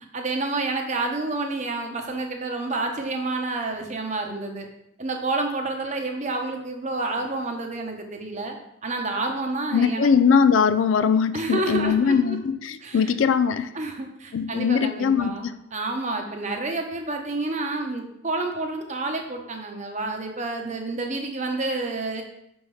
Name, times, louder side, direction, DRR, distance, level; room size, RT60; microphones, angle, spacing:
voice 1, 0.1-4.7 5.0-8.6 8.8-10.1 11.3-12.4 12.8-13.0 13.7-15.5 15.7-22.2, right 2 dB, 35° right, 3 dB, 0.8 m, -29 dB
voice 2, 9.7-13.8 14.3-15.5, left 6 dB, 75° left, 12 dB, 0.4 m, -21 dB
6.2 x 5.4 x 3.2 m, 0.78 s
head